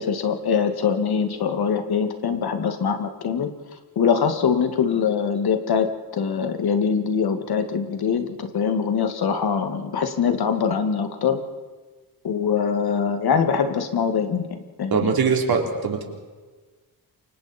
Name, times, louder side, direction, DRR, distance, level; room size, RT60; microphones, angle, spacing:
voice 1, 0.0-3.5 4.0-5.9 6.1-11.4 12.2-15.1, left 6 dB, 85° left, 7 dB, 2.1 m, -23 dB
voice 2, 14.9-16.0, right 5 dB, 75° right, 2 dB, 3.7 m, -21 dB
28.5 x 25.0 x 4.4 m, 1.3 s
wide cardioid pair, 145°, 37 cm